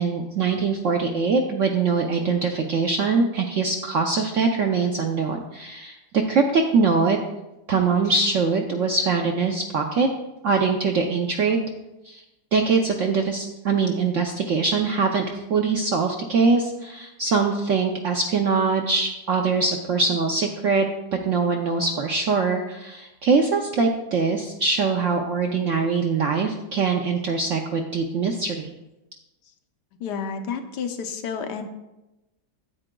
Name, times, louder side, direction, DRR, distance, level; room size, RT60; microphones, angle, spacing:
voice 1, 0.0-7.2 7.7-10.1 10.4-11.7 12.0-12.2 12.5-20.9 21.2-28.7, right 4 dB, 70° right, 2 dB, 0.7 m, -23 dB
voice 2, 30.0-31.6, left 6 dB, 75° left, 6 dB, 1.2 m, -30 dB
9.6 x 8.5 x 2.2 m, 0.97 s
omnidirectional pair, 1.9 m